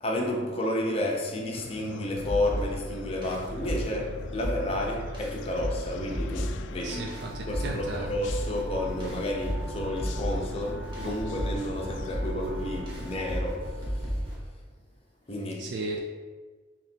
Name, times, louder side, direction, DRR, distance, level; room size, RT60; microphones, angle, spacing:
voice 1, 0.0-7.1 7.5-14.3 15.3-15.7, left 1 dB, 35° left, 0 dB, 0.7 m, -31 dB
sound 1, 1.5-13.2, left 5 dB, 90° left, 0.3 m, -44 dB
sound 2, 2.1-14.5, equal, 25° right, 1.2 m, -34 dB
voice 2, 6.8-8.1 15.6-16.0, right 3 dB, 65° right, 1 dB, 0.4 m, -35 dB
Wind instrument woodwind instrument, 6.9-14.4, right 2 dB, 10° right, 1.1 m, -47 dB
4.0 x 3.0 x 4.4 m, 1.4 s
head